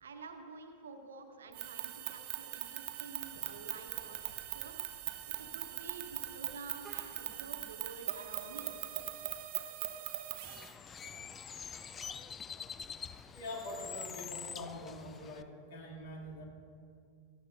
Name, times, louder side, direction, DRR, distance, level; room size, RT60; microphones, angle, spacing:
voice 1, 0.0-4.8 5.3-8.8, right 4 dB, 65° right, 5 dB, 1.1 m, -50 dB
sound 1, 1.5-10.7, right 14 dB, 45° right, 0.8 m, -41 dB
Vehicle horn car horn honking, 3.9-9.0, right 2 dB, 15° right, 2.0 m, -61 dB
Bird, 10.4-15.4, left 7 dB, 20° left, 0.4 m, -45 dB
voice 2, 13.3-16.4, left 1 dB, 55° left, -1 dB, 2.4 m, -44 dB
18.5 x 13.5 x 2.6 m, 2.3 s
figure-of-eight pair, 90°, 0 cm